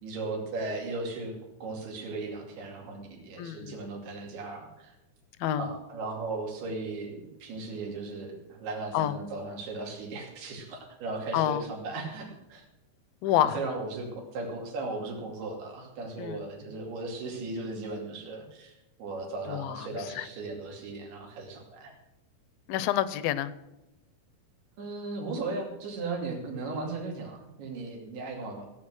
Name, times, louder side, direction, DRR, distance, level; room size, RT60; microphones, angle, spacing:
voice 1, 0.0-4.9 5.6-12.6 13.4-21.9 24.8-28.7, right 3 dB, 85° right, 1 dB, 4.6 m, -37 dB
voice 2, 3.4-3.7 5.4-5.7 8.9-9.2 11.3-11.6 13.2-13.6 16.2-16.4 19.5-20.3 22.7-23.5, left 12 dB, 80° left, 15 dB, 2.3 m, -28 dB
16.5 x 8.2 x 6.3 m, 0.96 s
omnidirectional pair, 4.4 m